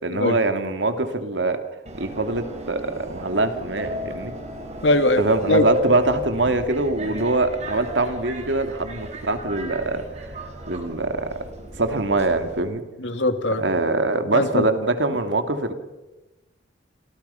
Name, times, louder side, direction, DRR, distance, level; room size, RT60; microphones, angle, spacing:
voice 1, 0.0-1.6 1.9-4.3 5.2-10.0 10.7-11.5 11.8-12.8 13.6-15.7, right 2 dB, 80° right, 7 dB, 2.6 m, -23 dB
Subway metro underground, 1.9-12.6, left 1 dB, 35° right, 5.0 m, -33 dB
voice 2, 4.8-5.2 5.5-5.6 13.0-13.6 14.3-14.7, left 1 dB, 80° left, 8 dB, 2.4 m, -20 dB
29.5 x 27.0 x 5.8 m, 1.1 s
head